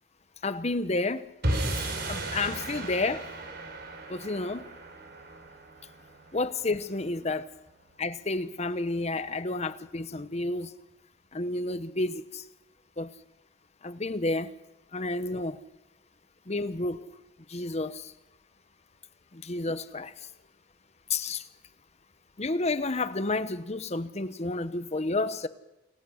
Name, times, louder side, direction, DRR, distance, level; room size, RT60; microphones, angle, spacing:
voice 1, 0.4-1.3 2.1-3.3 4.1-4.7 6.3-7.5 8.0-10.7 11.3-12.4 13.0-13.1 13.8-14.5 14.9-15.6 16.5-17.1 17.5-18.1 19.3-20.3 21.1-21.5 22.4-25.5, left 2 dB, 35° left, 1.0 m, -30 dB
sound 1, 1.4-7.8, right 1 dB, 60° right, 4.9 m, -35 dB
29.0 x 17.0 x 6.4 m
head